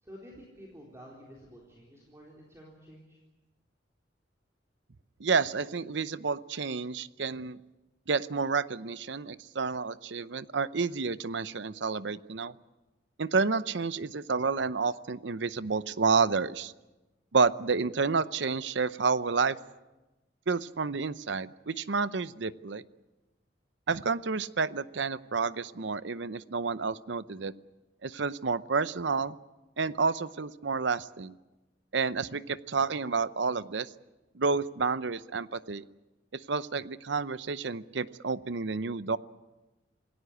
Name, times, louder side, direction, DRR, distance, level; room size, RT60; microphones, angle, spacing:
voice 1, 0.0-3.2, equal, 15° right, -3 dB, 4.0 m, -50 dB
voice 2, 5.2-7.6 8.1-12.5 13.2-16.7 17.3-19.6 20.5-22.8 23.9-27.5 28.0-29.4 29.8-31.3 31.9-33.9 34.3-35.8 36.3-39.2, right 4 dB, 70° right, 15 dB, 0.7 m, -30 dB
27.5 x 17.5 x 8.1 m, 1.1 s
head